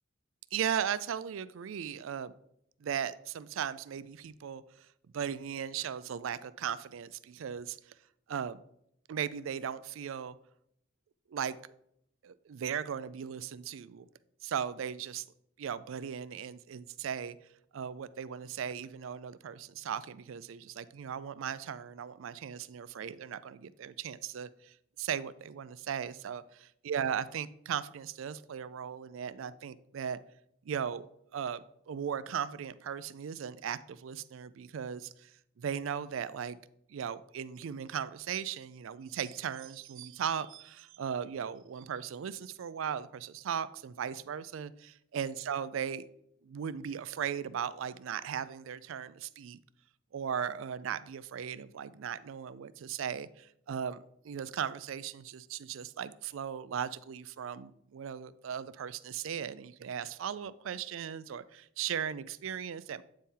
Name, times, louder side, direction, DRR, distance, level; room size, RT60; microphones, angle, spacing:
voice 1, 0.5-2.3 2.8-4.6 5.1-7.8 8.3-8.6 9.1-10.3 11.3-11.6 12.2-14.1 14.4-15.2 15.6-17.4 17.7-26.4 26.8-30.2 30.7-31.1 31.3-35.3 35.6-36.6 36.9-46.0 46.4-49.6 50.1-63.0, right 8 dB, 85° right, 16 dB, 0.4 m, -37 dB
8.9 x 4.1 x 3.7 m, 0.74 s
head